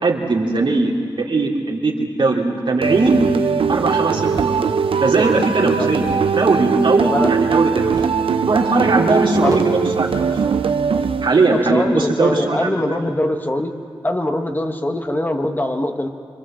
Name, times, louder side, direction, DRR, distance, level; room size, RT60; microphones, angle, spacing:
voice 1, 0.0-3.2 3.7-4.7 5.0-6.0 6.4-8.1 8.4-10.6 11.2-13.0, right 3 dB, 65° right, -1 dB, 3.3 m, -19 dB
sound 1, 2.8-11.7, right 6 dB, 90° right, 0.8 m, -20 dB
sound 2, 4.3-4.6 6.0-7.5 7.9-8.3 8.6-8.7 9.0-10.6, right 3 dB, 40° right, 1.2 m, -34 dB
voice 2, 7.0-7.3 9.4-9.6 11.5-13.7 14.0-16.1, left 1 dB, 20° left, 4 dB, 1.4 m, -22 dB
26.5 x 24.5 x 7.6 m, 2.4 s
wide cardioid pair, 105°, 9 cm